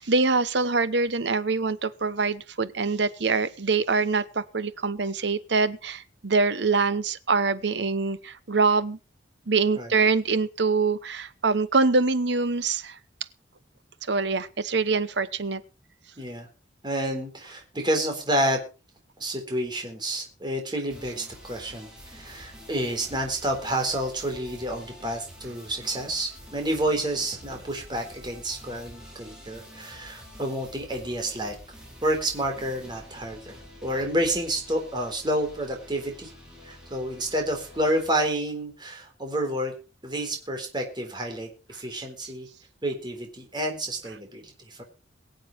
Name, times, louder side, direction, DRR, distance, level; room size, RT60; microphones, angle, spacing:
voice 1, 0.0-9.0 9.5-13.0 14.1-15.6, right 4 dB, 70° right, 1.0 m, -24 dB
voice 2, 16.2-16.5 16.8-18.6 19.2-31.6 32.0-33.6 33.8-36.3 36.6-39.7 40.0-42.5 42.8-44.8, right 1 dB, 25° right, 3.8 m, -29 dB
sound 1, 20.9-38.3, equal, 5° right, 4.5 m, -47 dB
22.5 x 7.7 x 4.5 m
head